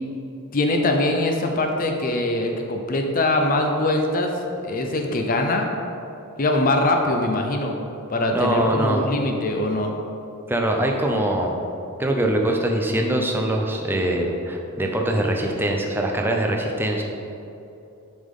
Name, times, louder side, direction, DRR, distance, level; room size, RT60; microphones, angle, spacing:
voice 1, 0.5-4.3 4.6-5.7 6.4-7.8 8.1-9.9, left 2 dB, 40° left, 3 dB, 0.5 m, -22 dB
voice 2, 8.3-9.1 10.5-11.6 12.0-17.0, right 1 dB, 10° right, 1 dB, 0.6 m, -23 dB
7.0 x 5.3 x 3.7 m, 2.8 s
head